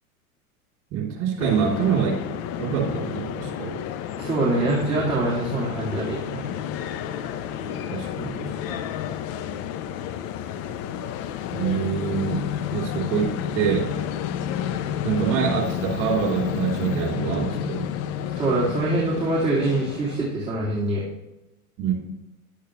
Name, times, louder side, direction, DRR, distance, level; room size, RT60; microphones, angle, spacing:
voice 1, 0.9-2.3 2.6-3.8 4.6-4.7 7.9-8.8 11.5-13.9 15.0-17.9 21.8-21.9, right 7 dB, 40° right, -1 dB, 3.3 m, -25 dB
sound 1, 1.4-20.3, left 9 dB, 35° left, 0.6 m, -31 dB
voice 2, 4.2-6.5 18.4-21.0, right 2 dB, 15° right, -7 dB, 2.3 m, -24 dB
10.5 x 8.4 x 3.1 m, 0.99 s
hypercardioid pair, 95°, 43 cm